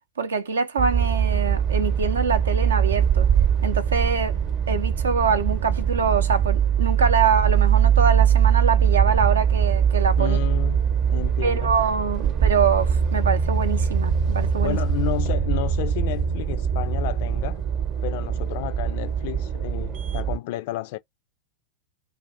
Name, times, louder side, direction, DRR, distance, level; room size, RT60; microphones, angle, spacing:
voice 1, 0.2-3.3 3.6-4.4 4.7-10.4 11.4-14.8, right 5 dB, 70° right, 0.5 m, -24 dB
sound 1, 0.8-20.4, right 8 dB, 40° right, 0.8 m, -22 dB
voice 2, 10.2-10.8 11.1-11.7 14.6-17.6 18.0-21.0, left 17 dB, 50° left, 0.3 m, -31 dB
2.5 x 2.5 x 3.6 m
figure-of-eight pair, 90°, 0 cm